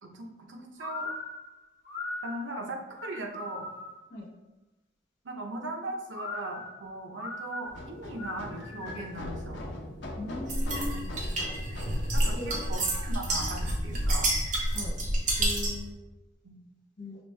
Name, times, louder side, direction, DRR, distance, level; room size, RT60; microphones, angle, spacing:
voice 1, 0.0-1.1 2.2-3.7 5.2-9.6 10.9-11.3 12.1-14.3 16.4-16.6, right 2 dB, 85° right, 2 dB, 0.7 m, -39 dB
sound 1, 0.8-4.1 6.1-9.2, left 2 dB, 35° left, 1.1 m, -40 dB
sound 2, 7.7-13.7, left 1 dB, 75° left, 0.8 m, -41 dB
voice 2, 10.2-11.0 12.3-12.6 14.7-14.9 15.4-15.9 17.0-17.2, left 2 dB, 60° left, -4 dB, 1.4 m, -38 dB
sound 3, 10.5-15.8, right 1 dB, 40° right, 0.7 m, -29 dB
5.1 x 2.6 x 3.2 m, 1.0 s
head